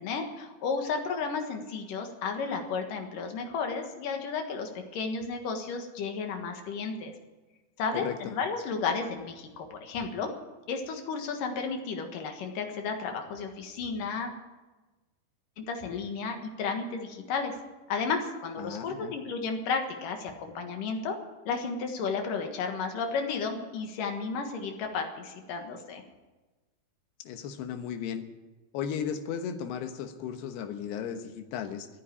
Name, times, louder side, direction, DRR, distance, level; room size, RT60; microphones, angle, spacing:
voice 1, 0.0-7.1 7.8-10.3 10.7-14.3 15.6-17.6 17.9-21.2 21.5-26.0, left 5 dB, 60° left, 4 dB, 2.9 m, -33 dB
voice 2, 18.6-19.1 27.2-28.2 28.7-31.9, left 8 dB, 80° left, 7 dB, 3.2 m, -35 dB
14.0 x 9.6 x 9.9 m, 1.1 s
omnidirectional pair, 4.7 m